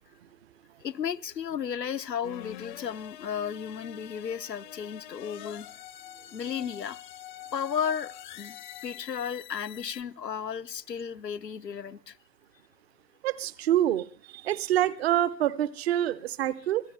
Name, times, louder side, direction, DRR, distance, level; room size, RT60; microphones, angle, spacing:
voice 1, 0.8-5.7 6.3-7.1 7.5-8.6 8.8-12.2, left 8 dB, 80° left, 0.8 m, -34 dB
sound 1, 2.2-10.0, left 12 dB, 30° left, 0.7 m, -45 dB
voice 2, 13.2-14.0 14.3-16.8, right 12 dB, 40° right, 0.8 m, -26 dB
24.5 x 15.5 x 3.3 m
figure-of-eight pair, 115°, 49 cm